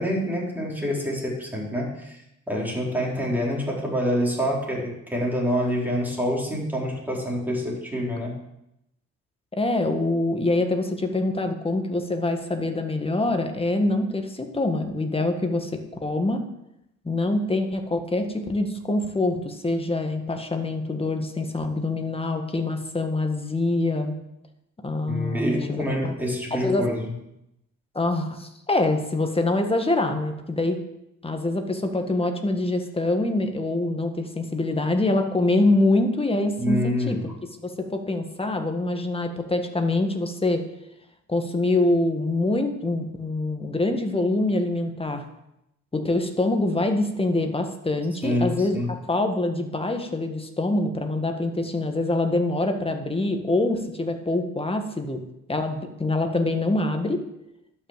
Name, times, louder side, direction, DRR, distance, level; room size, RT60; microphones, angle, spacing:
voice 1, 0.0-2.2 2.5-8.3 25.1-27.1 36.6-37.3 48.2-48.9, equal, 5° right, -3 dB, 4.3 m, -26 dB
voice 2, 9.5-16.5 17.1-24.1 24.8-26.1 26.5-26.9 28.0-30.8 31.2-37.3 37.6-40.7 41.3-45.3 45.9-57.3, left 2 dB, 20° left, 5 dB, 1.7 m, -25 dB
12.0 x 6.1 x 7.5 m, 0.84 s
cardioid pair, 90°, 30 cm